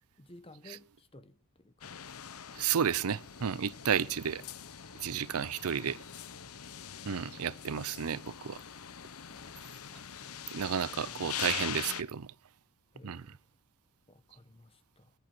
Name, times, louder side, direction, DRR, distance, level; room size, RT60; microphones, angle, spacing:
voice 1, 0.2-1.9 4.3-4.6 9.3-9.6 9.9-10.5 10.9-11.4 12.9-13.4 14.1-15.1, left 2 dB, 25° left, 1.0 m, -56 dB
sound 1, 1.8-12.0, left 9 dB, 80° left, 0.9 m, -43 dB
voice 2, 2.6-4.4 5.0-6.0 7.1-8.6 10.5-12.3 13.0-13.2, right 8 dB, 85° right, 0.6 m, -32 dB
19.0 x 9.3 x 6.0 m
head